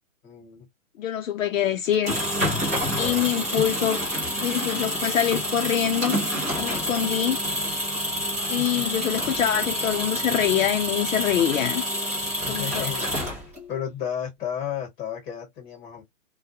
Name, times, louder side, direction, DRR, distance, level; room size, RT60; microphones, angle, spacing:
voice 1, 0.2-0.7 2.6-3.5 8.6-8.8 12.2-16.0, left 9 dB, 15° left, 1.1 m, -34 dB
voice 2, 1.0-2.2 3.0-4.1 4.4-6.2 6.6-7.4 8.5-11.8 12.5-12.9, left 10 dB, 65° left, 0.5 m, -25 dB
sound 1, 1.8-13.7, equal, 10° right, 0.5 m, -28 dB
2.2 x 2.2 x 2.6 m
hypercardioid pair, 160°, 43 cm